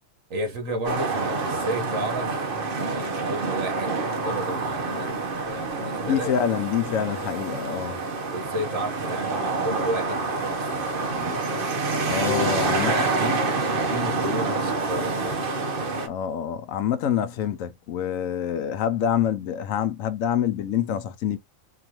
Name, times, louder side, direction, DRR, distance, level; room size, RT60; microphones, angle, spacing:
voice 1, 0.3-2.5 2.8-5.2 5.5-6.4 8.3-11.4 12.7-15.5, right 1 dB, 75° right, 1.7 m, -32 dB
sound 1, 0.8-16.1, right 3 dB, 45° right, 1.0 m, -27 dB
voice 2, 6.0-8.0 12.1-12.9 16.0-21.4, left 9 dB, 80° left, 1.0 m, -26 dB
4.6 x 2.5 x 2.9 m
omnidirectional pair, 1.4 m